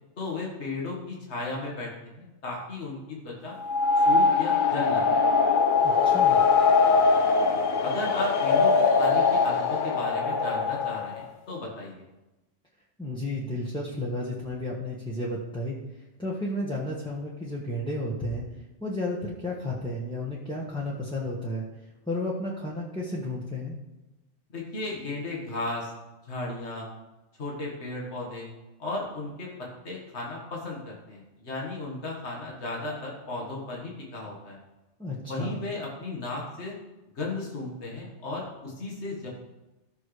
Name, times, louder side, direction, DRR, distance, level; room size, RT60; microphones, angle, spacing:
voice 1, 0.2-3.6 4.0-5.2 7.8-12.0 24.5-25.9 26.3-26.9 27.4-28.5 28.8-34.6 35.2-36.7 37.2-39.3, left 2 dB, 70° left, -3 dB, 2.0 m, -35 dB
sound 1, 3.6-11.3, left 4 dB, 50° left, 0.8 m, -22 dB
voice 2, 5.8-6.4 13.0-15.8 16.2-18.4 18.8-21.6 22.1-23.8 35.0-35.6, left 1 dB, 5° left, -5 dB, 1.3 m, -32 dB
16.5 x 6.2 x 3.3 m, 1.0 s
omnidirectional pair, 1.2 m